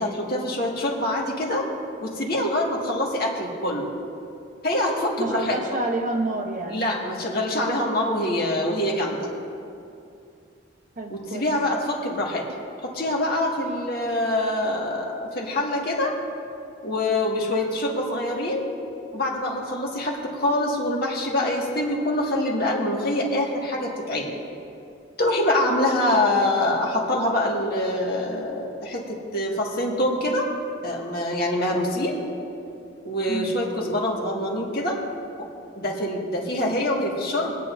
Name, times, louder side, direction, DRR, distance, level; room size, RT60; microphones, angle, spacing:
voice 1, 0.0-1.7 2.0-3.9 4.6-5.6 6.7-9.2 11.1-12.4 12.8-16.1 16.8-18.6 19.1-24.4 25.2-30.5 30.8-32.1 33.0-35.0 35.4-35.5 35.8-37.6, left 1 dB, 50° left, -2 dB, 1.9 m, -25 dB
voice 2, 5.2-6.8 11.0-11.5 33.3-33.6, right 2 dB, 40° right, 1 dB, 1.1 m, -28 dB
23.5 x 9.2 x 2.7 m, 2.5 s
head